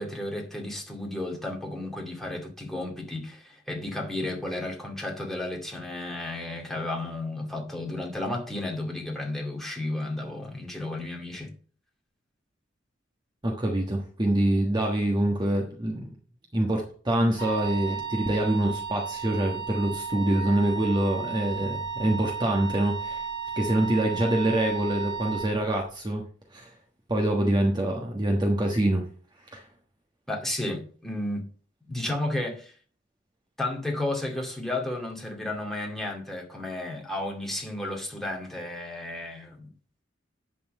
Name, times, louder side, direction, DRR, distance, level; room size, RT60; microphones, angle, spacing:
voice 1, 0.0-11.5 30.3-31.5 31.9-32.7 33.6-39.7, left 1 dB, ahead, 2.2 m, -33 dB
voice 2, 13.4-16.1 16.5-23.2 23.6-26.2 26.5-26.7 27.1-29.1 29.5-29.6, right 1 dB, 25° right, 1.3 m, -25 dB
Wind instrument woodwind instrument, 17.4-25.6, right 6 dB, 65° right, 2.7 m, -34 dB
11.0 x 4.3 x 6.6 m
head